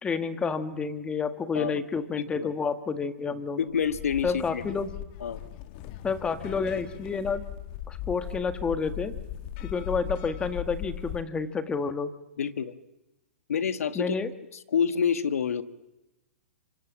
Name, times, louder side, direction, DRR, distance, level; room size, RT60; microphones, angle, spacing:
voice 1, 0.0-3.6 4.2-4.9 6.0-7.4 7.9-9.1 9.6-12.1 13.9-14.3, left 5 dB, 10° left, 10 dB, 1.6 m, -29 dB
voice 2, 2.2-2.5 3.6-4.6 5.2-5.4 12.4-12.7 13.5-14.2 14.7-15.6, left 7 dB, 80° left, 11 dB, 1.7 m, -27 dB
sound 1, 3.7-11.2, left 12 dB, 40° left, 1.5 m, -38 dB
27.0 x 25.0 x 7.4 m, 0.98 s
hypercardioid pair, 145°, 8 cm